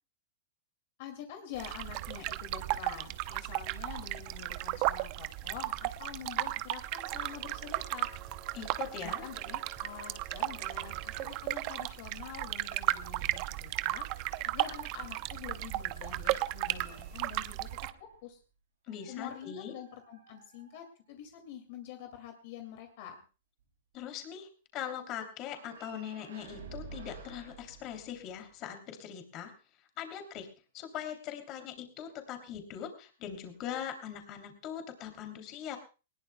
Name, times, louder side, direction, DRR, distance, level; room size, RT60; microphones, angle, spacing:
voice 1, 1.0-8.1 8.9-14.1 14.4-17.7 18.0-18.4 19.1-23.2, left 9 dB, 55° left, 5 dB, 2.4 m, -46 dB
sound 1, 1.6-17.9, right 17 dB, 40° right, 0.7 m, -35 dB
sound 2, 7.0-12.0, right 5 dB, 15° right, 2.7 m, -55 dB
voice 2, 8.5-9.3 18.9-19.7 23.9-29.5 30.0-30.5 30.7-35.8, left 9 dB, 35° left, 6 dB, 3.0 m, -41 dB
sound 3, 16.2-18.2 18.9-21.3 25.4-28.5, right 5 dB, 85° right, 7.8 m, -51 dB
20.0 x 19.5 x 2.3 m, 0.33 s
hypercardioid pair, 150°, 0 cm